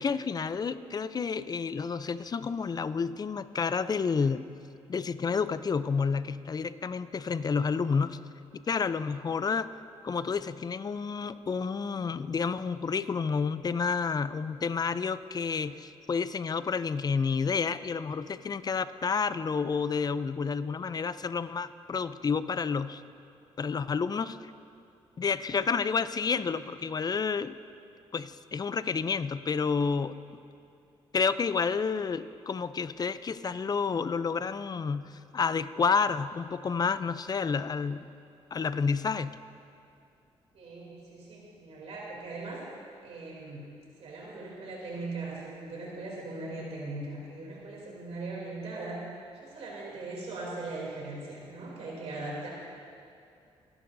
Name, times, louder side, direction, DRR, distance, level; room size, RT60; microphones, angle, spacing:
voice 1, 0.0-4.5 4.9-8.2 8.5-9.7 10.0-23.0 23.6-24.4 25.2-27.6 28.1-30.2 31.1-38.1 38.5-39.3, left 5 dB, 35° left, 14 dB, 0.5 m, -30 dB
voice 2, 40.5-42.6 43.0-49.1 49.4-52.5, right 2 dB, 70° right, -4 dB, 3.1 m, -39 dB
23.5 x 11.0 x 2.7 m, 2.5 s
cardioid pair, 75°, 11 cm